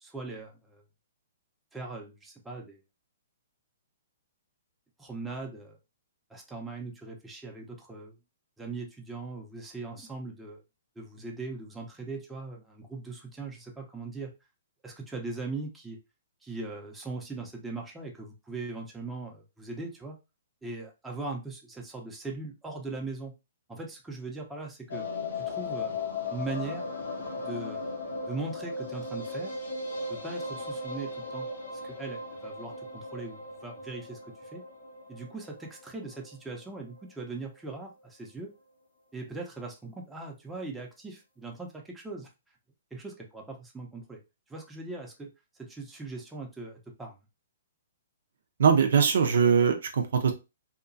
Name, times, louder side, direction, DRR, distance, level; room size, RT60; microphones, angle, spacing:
voice 1, 0.0-0.8 1.7-2.8 5.0-5.8 6.3-8.2 8.6-10.6 11.0-14.3 14.8-16.0 16.4-20.2 20.6-23.3 23.7-25.1 25.4-25.9 26.3-26.9 27.4-27.9 28.3-29.5 30.1-31.5 31.7-34.6 35.1-38.5 39.1-42.3 42.9-44.2 44.5-45.3 45.6-47.1, right 3 dB, 10° right, 0 dB, 0.7 m, -40 dB
sound 1, 24.9-37.0 37.3-37.4 37.7-37.8 38.0-38.1, left 3 dB, 85° left, 1.1 m, -37 dB
voice 2, 48.6-50.3, right 6 dB, 70° right, 5 dB, 0.6 m, -22 dB
2.8 x 2.3 x 2.6 m, 0.26 s
hypercardioid pair, 130°, 0 cm